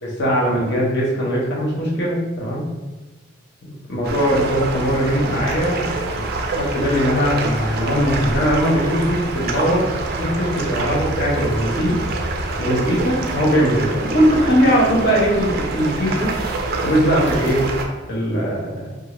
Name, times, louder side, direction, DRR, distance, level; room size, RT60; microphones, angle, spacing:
voice 1, 0.0-2.6 3.6-12.0 12.6-16.3 16.8-17.7 18.1-18.9, equal, 55° left, -5 dB, 0.8 m, -20 dB
sound 1, 4.0-17.8, right 2 dB, 50° right, 0.4 m, -26 dB
2.6 x 2.4 x 3.0 m, 1.1 s
head